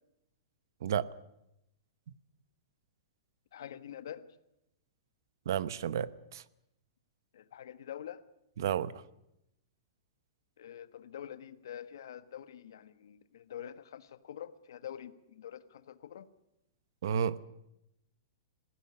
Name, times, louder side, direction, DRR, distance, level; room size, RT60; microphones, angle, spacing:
voice 1, 3.5-4.3 7.3-8.2 10.6-16.3, left 10 dB, 65° left, 1.4 m, -46 dB
voice 2, 5.5-6.4 8.6-8.9 17.0-17.4, right 8 dB, 60° right, 0.9 m, -31 dB
21.0 x 16.0 x 9.7 m
supercardioid pair, 175°, 2 cm